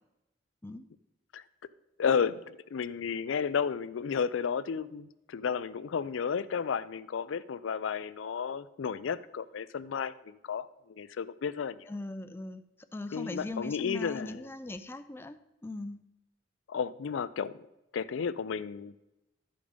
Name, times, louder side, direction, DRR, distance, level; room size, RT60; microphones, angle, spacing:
voice 1, 2.0-11.9 13.1-14.5 16.7-17.6 17.9-18.9, left 6 dB, 90° left, 15 dB, 0.4 m, -33 dB
voice 2, 11.9-12.6 12.9-16.0, left 2 dB, 10° left, 9 dB, 0.4 m, -40 dB
12.0 x 5.2 x 5.1 m, 0.94 s
head